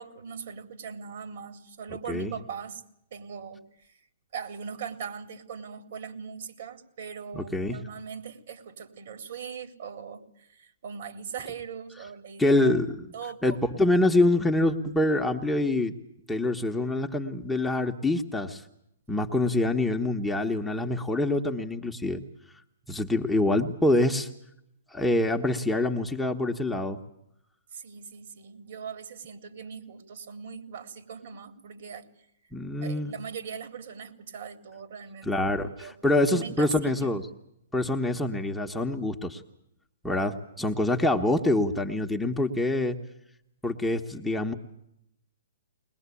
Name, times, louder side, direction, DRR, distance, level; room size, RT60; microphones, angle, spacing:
voice 1, 0.0-2.8 3.1-4.0 4.3-12.8 13.1-13.6 27.7-32.1 32.8-35.3 35.8-35.9 36.3-37.2, right 7 dB, 60° right, 7 dB, 3.8 m, -40 dB
voice 2, 7.3-7.8 12.4-13.1 13.4-16.0 16.3-18.6 19.1-22.2 22.9-24.3 24.9-27.0 32.5-33.1 35.2-37.2 37.7-39.4 40.0-43.0 43.6-44.5, left 2 dB, 5° left, 2 dB, 1.4 m, -25 dB
21.5 x 21.5 x 8.5 m, 0.78 s
hypercardioid pair, 130°, 0 cm